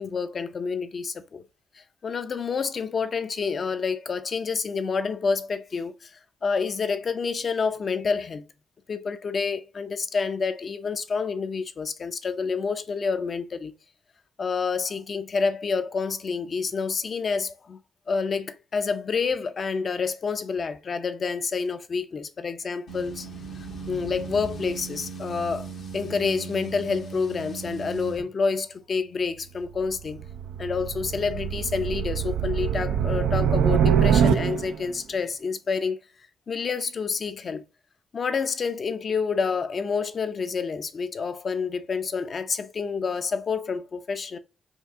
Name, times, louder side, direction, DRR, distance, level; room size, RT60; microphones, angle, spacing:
voice 1, 0.0-1.4 1.7-8.5 8.9-13.7 14.4-17.8 18.1-23.3 23.6-30.2 30.6-36.0 36.5-37.6 38.1-44.4, left 5 dB, 50° left, 0.6 m, -28 dB
sound 1, 22.9-28.2, right 5 dB, 70° left, 1.2 m, -38 dB
sound 2, 29.7-34.9, right 8 dB, 85° right, 0.4 m, -24 dB
4.5 x 2.7 x 3.6 m
supercardioid pair, 65°, 0 cm